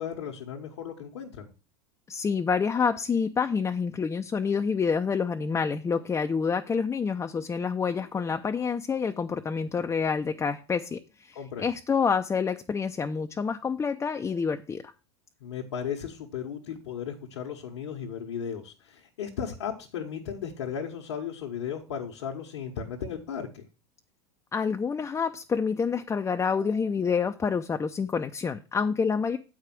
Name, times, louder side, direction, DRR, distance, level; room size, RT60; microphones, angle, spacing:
voice 1, 0.0-1.5 11.3-11.7 15.4-23.7, left 7 dB, 75° left, 1.3 m, -35 dB
voice 2, 2.1-14.8 24.5-29.4, left 5 dB, 20° left, 0.6 m, -28 dB
8.2 x 4.9 x 6.0 m
hypercardioid pair, 90°, 14 cm